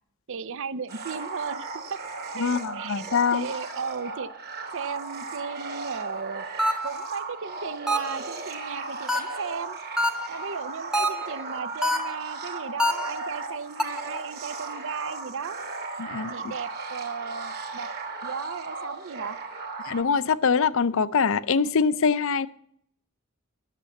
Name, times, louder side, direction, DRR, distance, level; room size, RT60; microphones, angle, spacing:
voice 1, 0.3-2.0 2.4-4.3 4.7-6.5 6.8-9.8 10.3-15.6 16.3-17.9 18.2-19.4, right 6 dB, 60° right, 0.6 m, -36 dB
sound 1, 0.9-20.0, right 3 dB, 45° right, 2.1 m, -36 dB
voice 2, 2.4-3.4 16.0-16.3 19.9-22.5, left 5 dB, 60° left, 0.6 m, -23 dB
sound 2, 6.6-7.1 7.9-8.3 9.1-9.5 10.0-10.4 10.9-11.4 11.8-12.3 12.8-13.3 13.8-14.2, equal, 5° right, 1.0 m, -26 dB
11.5 x 6.8 x 8.3 m
head